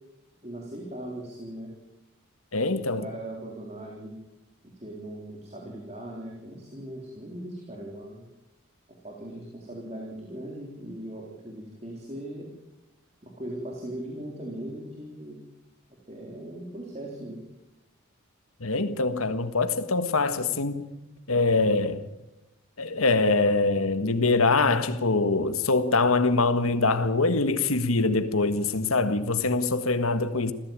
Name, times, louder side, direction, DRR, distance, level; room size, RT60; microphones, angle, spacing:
voice 1, 0.4-1.7 3.0-4.1 4.8-8.3 9.0-12.5 13.2-15.4 16.1-17.4, right 1 dB, 30° right, 3.8 m, -39 dB
voice 2, 2.5-3.1 18.6-20.9 21.3-22.0 22.8-30.5, left 3 dB, 85° left, 1.6 m, -24 dB
26.5 x 15.5 x 9.0 m
head